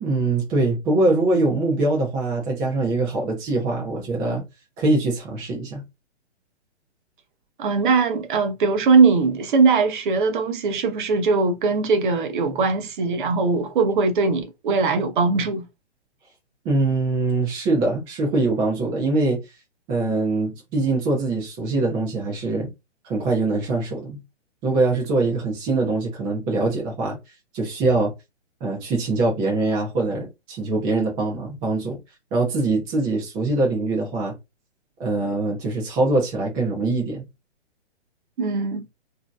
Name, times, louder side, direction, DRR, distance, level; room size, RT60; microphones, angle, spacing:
voice 1, 0.0-4.4 4.8-5.8 16.6-19.4 19.9-22.7 23.0-24.2 24.6-27.2 27.5-28.1 28.6-32.0 32.3-34.4 35.0-37.2, right 2 dB, 10° right, 0.4 m, -23 dB
voice 2, 7.6-15.7 38.4-38.9, right 4 dB, 45° right, 0.7 m, -20 dB
2.9 x 2.6 x 2.3 m
hypercardioid pair, 135°, 35 cm